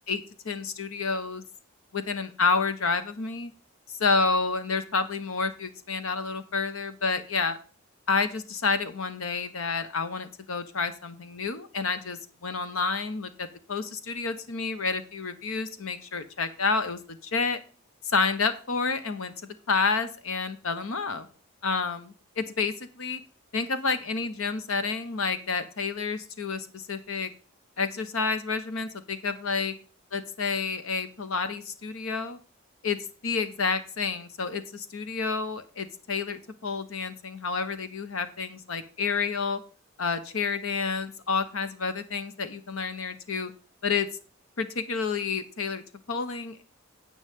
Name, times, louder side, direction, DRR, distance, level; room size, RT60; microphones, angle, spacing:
voice 1, 0.1-1.4 1.9-3.5 3.9-7.6 8.1-17.6 18.0-19.3 19.7-21.3 21.6-23.2 23.5-27.3 27.8-29.7 30.1-32.4 32.8-33.0 33.2-39.6 40.0-43.5 43.8-44.1 44.6-46.6, left 4 dB, 80° left, 11 dB, 0.9 m, -29 dB
9.3 x 8.7 x 3.6 m, 0.37 s
head